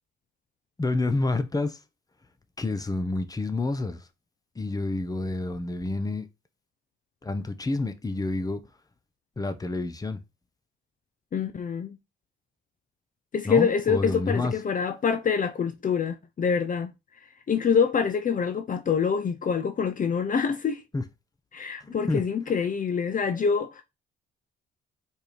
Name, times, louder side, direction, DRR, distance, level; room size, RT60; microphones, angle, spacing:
voice 1, 0.8-1.8 2.6-4.0 4.5-6.3 7.2-8.6 9.4-10.2 13.4-14.5 20.9-21.0 21.8-22.2, left 2 dB, 20° left, 1.1 m, -28 dB
voice 2, 11.3-12.0 13.3-16.9 17.5-20.8 21.5-23.8, left 6 dB, 40° left, 0.8 m, -25 dB
4.6 x 4.5 x 5.2 m
cardioid pair, 90°, 20 cm